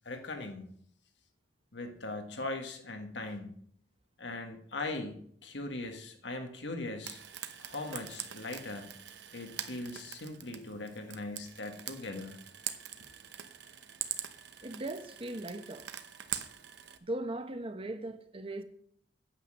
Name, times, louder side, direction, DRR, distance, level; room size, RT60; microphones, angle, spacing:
voice 1, 0.0-0.7 1.7-3.6 4.2-7.2 7.6-8.9 9.3-12.4, left 2 dB, 90° left, 1.7 m, -40 dB
Frying (food), 7.0-17.0, right 10 dB, 80° right, 0.9 m, -43 dB
voice 2, 14.6-15.9 17.0-18.6, right 1 dB, 30° right, 1.0 m, -38 dB
9.2 x 7.6 x 6.3 m
head